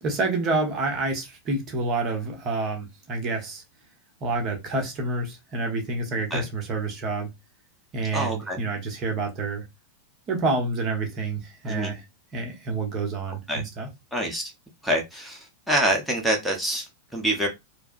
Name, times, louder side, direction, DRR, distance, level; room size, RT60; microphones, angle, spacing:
voice 1, 0.0-3.6 4.2-7.3 7.9-9.6 10.3-12.1 12.3-13.9, right 3 dB, 30° right, 1.0 m, -28 dB
voice 2, 8.1-8.6 11.6-11.9 13.5-13.6 14.1-14.5 14.8-15.4 15.7-17.5, right 1 dB, ahead, 0.9 m, -26 dB
4.6 x 2.0 x 2.5 m
figure-of-eight pair, 90°, 0 cm